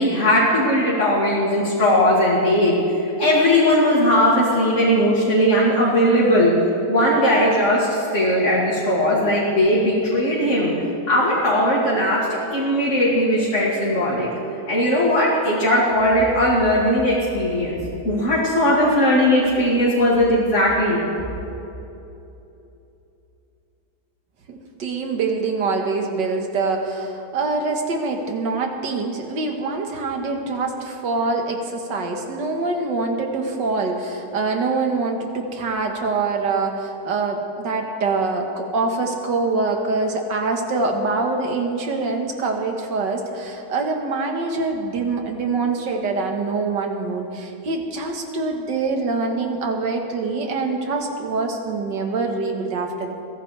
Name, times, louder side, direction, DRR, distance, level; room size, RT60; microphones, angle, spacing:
voice 1, 0.0-6.5 6.9-10.7 11.1-14.3 14.7-17.8 18.0-21.0, equal, 45° left, -7 dB, 2.8 m, -18 dB
voice 2, 24.5-53.1, right 3 dB, 85° right, 3 dB, 2.1 m, -24 dB
23.5 x 16.0 x 3.4 m, 2.9 s
omnidirectional pair, 1.9 m